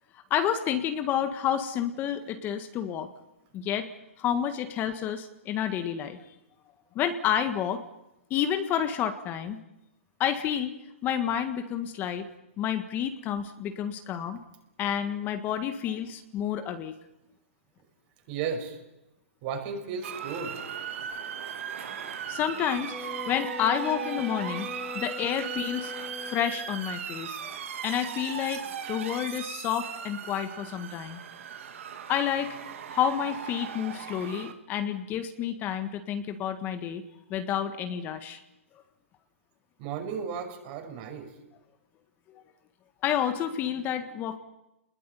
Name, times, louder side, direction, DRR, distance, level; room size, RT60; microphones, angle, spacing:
voice 1, 0.1-3.1 3.5-3.9 4.2-6.3 6.9-7.8 8.3-9.6 10.2-10.7 11.0-12.3 12.6-14.4 14.8-17.0 22.3-24.7 24.9-25.9 26.2-27.5 27.8-31.2 32.1-32.6 32.9-37.0 37.3-38.4 43.0-44.4, left 9 dB, 25° left, 8 dB, 1.6 m, -29 dB
voice 2, 18.3-18.8 19.4-20.6 39.8-41.3, right 6 dB, 40° right, 4 dB, 5.9 m, -34 dB
Motor vehicle (road) / Siren, 20.0-34.5, right 8 dB, 70° right, 2.8 m, -38 dB
sound 1, 22.9-26.8, left 3 dB, ahead, 2.7 m, -40 dB
30.0 x 21.0 x 9.4 m, 0.93 s
hypercardioid pair, 145°, 7 cm